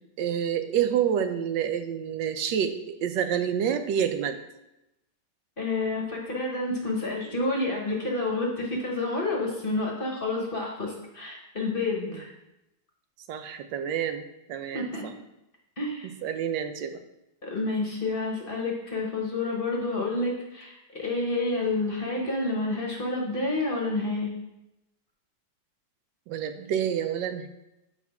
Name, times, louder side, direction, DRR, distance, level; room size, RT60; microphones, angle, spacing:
voice 1, 0.2-4.4 12.1-12.2 13.3-14.2 14.5-15.1 16.0-17.0 26.3-27.5, right 8 dB, 90° right, 8 dB, 1.3 m, -28 dB
voice 2, 5.6-12.3 14.7-15.1 15.8-16.1 17.4-24.3, left 2 dB, 40° left, -1 dB, 0.9 m, -29 dB
7.0 x 4.7 x 3.5 m, 0.91 s
omnidirectional pair, 1.9 m